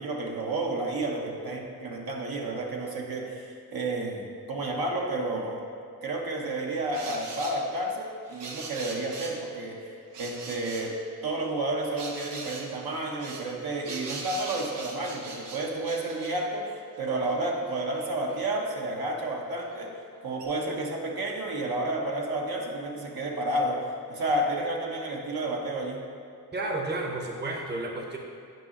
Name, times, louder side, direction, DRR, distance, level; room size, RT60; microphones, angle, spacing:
voice 1, 0.0-5.6 6.0-10.9 11.2-19.9 20.2-26.0, right 2 dB, 65° right, -1 dB, 1.0 m, -31 dB
sound 1, 6.9-7.6 8.3-9.4 10.1-10.9 12.0-12.7 13.2-16.4 17.0-17.1 17.3-18.5 19.7-19.8 20.4-20.5, right 3 dB, 90° right, 0.8 m, -41 dB
voice 2, 26.5-28.2, right 2 dB, 25° right, 1 dB, 0.9 m, -31 dB
9.2 x 4.8 x 2.9 m, 2.6 s
cardioid pair, 55°, 40 cm